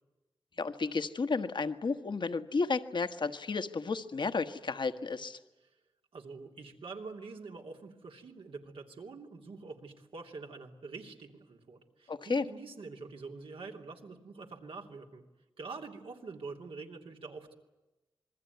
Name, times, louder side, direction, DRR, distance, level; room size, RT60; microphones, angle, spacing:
voice 1, 0.6-5.4 12.1-12.4, left 4 dB, 60° left, 8 dB, 1.4 m, -32 dB
voice 2, 6.1-15.2 15.6-17.6, right 4 dB, 80° right, 2 dB, 2.9 m, -46 dB
27.0 x 21.5 x 9.4 m, 1.0 s
cardioid pair, 65°, 9 cm